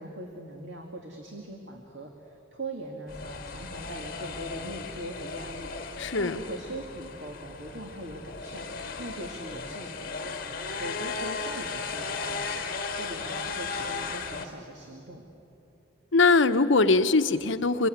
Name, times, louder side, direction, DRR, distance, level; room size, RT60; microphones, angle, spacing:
voice 1, 0.0-8.7 9.0-10.3 10.8-12.6 13.0-15.2, right 1 dB, 60° right, 2 dB, 2.4 m, -41 dB
sound 1, 3.1-14.4, left 4 dB, 45° left, 2.1 m, -36 dB
voice 2, 6.0-6.4 16.1-17.9, left 3 dB, 70° left, 9 dB, 1.0 m, -21 dB
27.5 x 22.5 x 9.5 m, 3.0 s
head